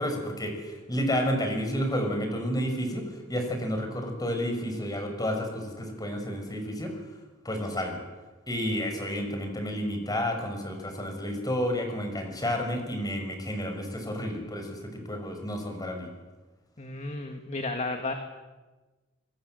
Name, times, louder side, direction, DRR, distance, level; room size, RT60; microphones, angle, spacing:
voice 1, 0.0-6.9 7.4-8.0 8.5-16.1, equal, 20° left, 4 dB, 6.0 m, -31 dB
voice 2, 16.8-18.1, left 2 dB, 35° left, 5 dB, 1.8 m, -33 dB
26.5 x 23.0 x 7.8 m, 1.2 s
head